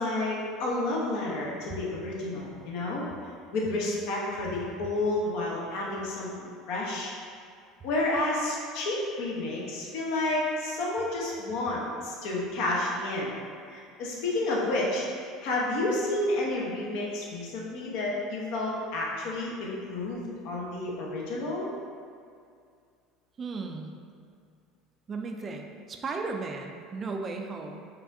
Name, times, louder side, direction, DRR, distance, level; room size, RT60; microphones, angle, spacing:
voice 1, 0.0-3.0 3.5-7.1 7.8-13.3 13.7-15.0 15.4-21.7, left 2 dB, 70° left, -4 dB, 0.8 m, -30 dB
voice 2, 23.4-24.0 25.1-27.8, right 4 dB, 30° right, 3 dB, 0.3 m, -35 dB
4.7 x 2.5 x 2.6 m, 2.3 s
supercardioid pair, 115°, 0 cm